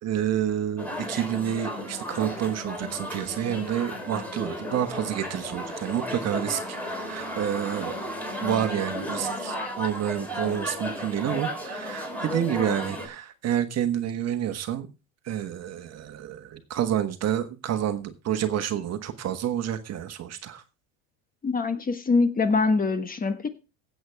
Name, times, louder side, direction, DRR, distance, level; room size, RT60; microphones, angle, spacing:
voice 1, 0.0-7.9 8.4-14.9 15.2-20.6, right 10 dB, 40° right, 1.4 m, -29 dB
sound 1, 0.8-13.1, equal, 5° left, 3.8 m, -34 dB
voice 2, 21.4-23.5, left 4 dB, 20° left, 1.4 m, -24 dB
16.0 x 8.0 x 3.5 m
supercardioid pair, 110°, 39 cm